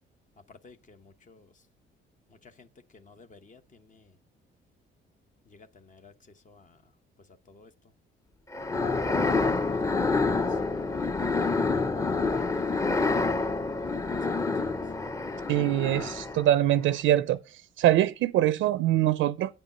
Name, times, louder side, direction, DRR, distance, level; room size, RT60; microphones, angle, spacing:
voice 1, 0.5-1.5 2.3-2.7 2.9-4.2 5.5-6.8 7.5-7.7 8.5-8.9 9.4-10.9 12.4-13.4 13.8-14.8, left 4 dB, 40° left, 0.9 m, -56 dB
sound 1, 8.5-16.5, left 3 dB, 15° left, 0.7 m, -27 dB
voice 2, 15.5-17.4 17.8-19.5, right 13 dB, 80° right, 0.5 m, -23 dB
8.9 x 5.2 x 5.5 m
cardioid pair, 90°, 20 cm